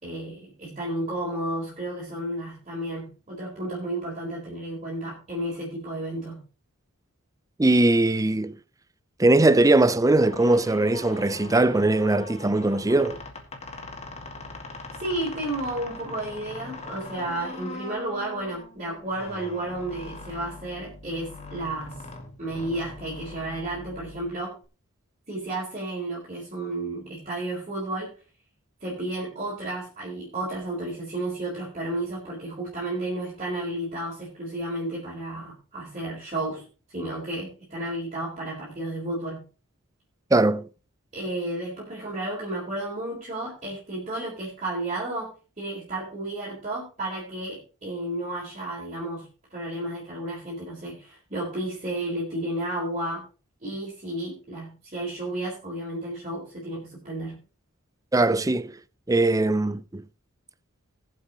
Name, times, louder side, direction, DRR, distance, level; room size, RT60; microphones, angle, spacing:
voice 1, 0.0-6.4 15.0-22.0 22.4-24.5 25.3-28.1 28.8-36.6 36.9-39.4 41.1-53.2 53.6-57.4, right 1 dB, 30° right, 4.4 m, -32 dB
voice 2, 7.6-8.5 9.2-13.2 40.3-40.7 58.1-58.7 59.1-60.0, right 2 dB, 15° right, 0.5 m, -20 dB
sound 1, 10.2-24.6, left 2 dB, 30° left, 2.1 m, -41 dB
20.0 x 7.6 x 3.0 m
head